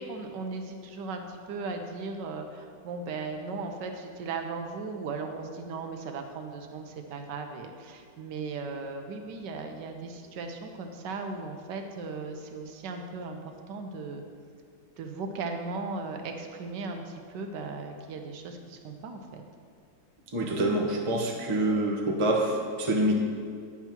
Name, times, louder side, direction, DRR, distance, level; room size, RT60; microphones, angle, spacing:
voice 1, 0.0-13.4 13.7-14.2 15.0-19.4, right 4 dB, 80° right, 5 dB, 1.4 m, -37 dB
voice 2, 20.3-23.1, right 1 dB, 30° right, 0 dB, 0.6 m, -26 dB
9.9 x 3.6 x 5.8 m, 2.2 s
omnidirectional pair, 1.9 m